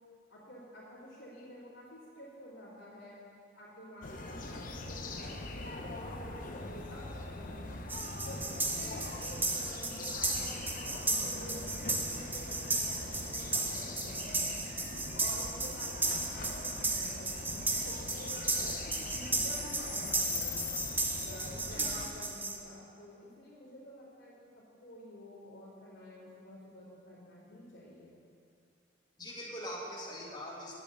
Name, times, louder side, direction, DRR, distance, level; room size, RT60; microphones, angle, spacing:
voice 1, 0.3-3.2 3.6-7.7 8.2-14.6 15.1-20.5 21.2-28.2, equal, 85° left, -13 dB, 3.2 m, -50 dB
sound 1, 4.0-22.1, left 3 dB, 45° left, 0.8 m, -42 dB
sound 2, 7.9-22.6, right 2 dB, 10° right, 0.7 m, -35 dB
voice 2, 21.7-22.1 29.2-30.8, equal, 20° left, -4 dB, 1.9 m, -43 dB
10.5 x 8.7 x 6.8 m, 2.4 s
head